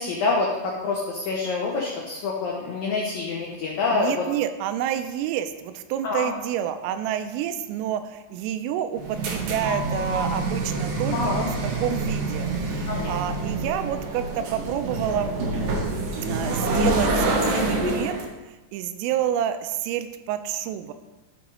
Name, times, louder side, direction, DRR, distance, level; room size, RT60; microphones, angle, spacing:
voice 1, 0.0-4.2 6.0-6.3 11.1-11.5 12.9-13.4 16.3-16.5, left 3 dB, 80° left, -2 dB, 2.0 m, -27 dB
voice 2, 3.9-11.4 11.8-15.4 16.2-20.9, right 10 dB, 90° right, 9 dB, 3.2 m, -29 dB
sound 1, 9.0-18.3, right 2 dB, 70° right, 2.1 m, -26 dB
12.5 x 5.9 x 4.2 m, 1.1 s
omnidirectional pair, 5.8 m